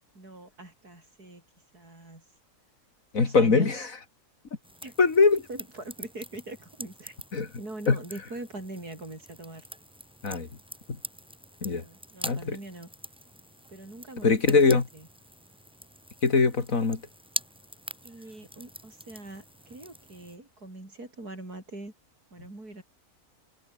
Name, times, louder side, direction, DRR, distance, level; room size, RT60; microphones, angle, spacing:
voice 1, 0.1-1.4 1.7-2.3 3.2-3.9 4.8-4.9 5.5-7.2 7.6-9.7 11.6-12.9 13.7-15.1 18.0-21.9 22.3-22.8, right 2 dB, 80° right, 7.4 m, -42 dB
voice 2, 3.1-3.8 5.0-5.4 7.3-7.5 7.9-8.0 10.2-10.5 11.6-11.8 12.3-12.6 14.2-14.8 16.2-17.0, left 4 dB, 60° left, 3.0 m, -22 dB
sound 1, 4.6-20.4, equal, 5° right, 3.1 m, -44 dB
omnidirectional pair, 1.6 m